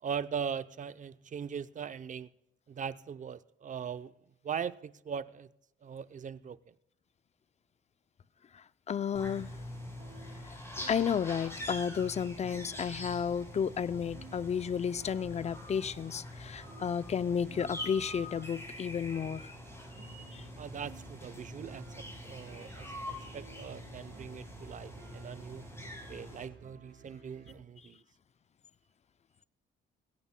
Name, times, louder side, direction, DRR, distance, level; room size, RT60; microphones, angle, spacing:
voice 1, 0.0-2.3 2.7-4.1 4.4-5.5 5.8-6.7 20.6-25.7 26.1-28.0, right 7 dB, 40° right, 0.6 m, -40 dB
voice 2, 8.5-9.6 10.4-19.5 20.3-20.5, left 7 dB, 35° left, 0.5 m, -33 dB
sound 1, 9.1-26.4, left 1 dB, 15° left, 5.9 m, -45 dB
sound 2, 9.8-27.5, right 5 dB, 60° right, 3.1 m, -55 dB
21.0 x 16.5 x 2.2 m
cardioid pair, 90°, 20 cm